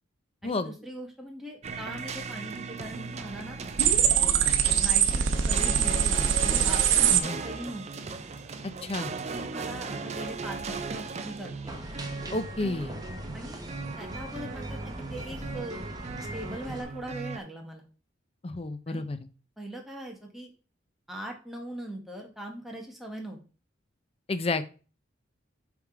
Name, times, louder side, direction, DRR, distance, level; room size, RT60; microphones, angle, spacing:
voice 1, 0.4-3.6 4.1-4.5 4.8-7.2 7.4-7.9 9.3-11.7 13.3-13.6 14.0-15.8 16.3-17.8 18.9-19.1 19.6-20.5 21.1-23.4, right 1 dB, ahead, 0 dB, 1.2 m, -40 dB
sound 1, 1.6-17.4, right 4 dB, 35° right, 0.5 m, -37 dB
sound 2, 3.8-7.2, right 8 dB, 80° right, 0.8 m, -23 dB
voice 2, 8.8-9.1 12.3-12.9 18.4-19.2 24.3-24.6, left 2 dB, 30° left, 11 dB, 0.5 m, -30 dB
sound 3, 11.7-16.8, right 1 dB, 20° right, 0.9 m, -41 dB
6.2 x 3.5 x 4.8 m, 0.36 s
head